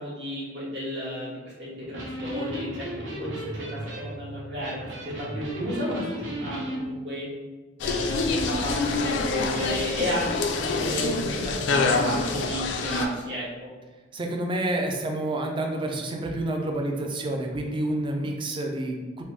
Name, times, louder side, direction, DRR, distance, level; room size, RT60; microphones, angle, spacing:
voice 1, 0.0-1.3 1.6-2.9 3.2-3.4 3.7-7.3 7.8-13.4 18.1-18.2, equal, 65° right, -8 dB, 1.3 m, -32 dB
Electric guitar, 1.8-6.8, right 1 dB, 80° right, 0.7 m, -35 dB
sound 1, 7.8-13.0, left 3 dB, 65° left, 0.3 m, -26 dB
voice 2, 14.1-19.2, right 1 dB, 25° right, 2 dB, 0.3 m, -29 dB
3.1 x 2.1 x 3.1 m, 1.3 s
head